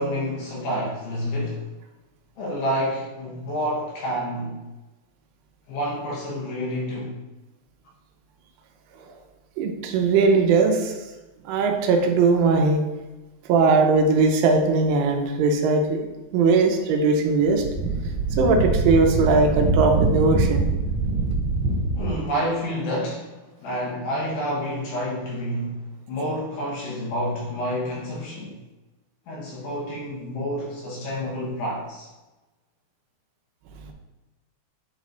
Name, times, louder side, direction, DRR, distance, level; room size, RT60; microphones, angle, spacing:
voice 1, 0.0-1.7 2.4-4.6 5.7-7.2 21.9-28.5 29.3-32.1, equal, 70° left, -4 dB, 2.9 m, -29 dB
voice 2, 9.6-10.9 11.5-12.8 13.5-17.6 18.4-20.7, right 4 dB, 85° right, 3 dB, 3.1 m, -19 dB
Wind, 17.5-22.2, right 3 dB, 60° right, 2.4 m, -24 dB
8.9 x 3.2 x 3.9 m, 1.1 s
omnidirectional pair, 5.7 m